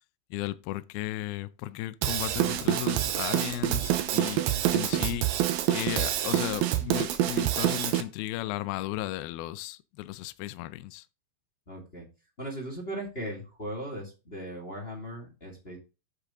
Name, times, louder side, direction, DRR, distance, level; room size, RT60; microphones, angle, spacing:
voice 1, 0.3-5.3 5.7-11.0, left 16 dB, 80° left, 2.3 m, -35 dB
Drum kit / Drum, 2.0-8.0, right 12 dB, 75° right, 2.4 m, -27 dB
voice 2, 11.7-12.1 12.4-15.8, equal, 20° left, 1.6 m, -38 dB
8.4 x 7.5 x 3.8 m
omnidirectional pair, 4.7 m